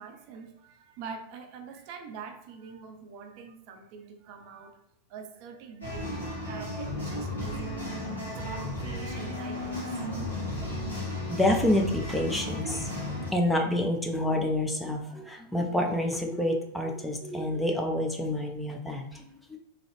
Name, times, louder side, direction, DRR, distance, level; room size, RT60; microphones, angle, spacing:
voice 1, 0.0-4.8 5.1-7.8 8.3-10.5 13.2-13.3 15.1-15.2, right 5 dB, 45° right, 5 dB, 0.5 m, -45 dB
sound 1, 5.8-13.3, left 1 dB, 75° left, 1.4 m, -34 dB
voice 2, 11.3-12.9 13.3-19.6, left 1 dB, 5° left, 2 dB, 0.5 m, -28 dB
3.8 x 2.8 x 3.3 m, 0.73 s
figure-of-eight pair, 90°, 0 cm